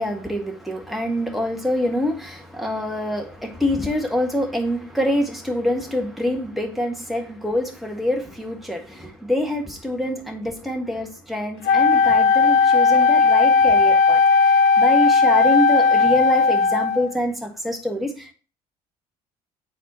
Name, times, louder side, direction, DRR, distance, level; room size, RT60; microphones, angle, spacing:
voice 1, 0.0-18.3, left 1 dB, ahead, 2 dB, 1.5 m, -25 dB
Wind instrument woodwind instrument, 11.7-17.1, left 4 dB, 55° left, 0.4 m, -16 dB
7.6 x 4.1 x 4.2 m, 0.36 s
figure-of-eight pair, 55°, 20 cm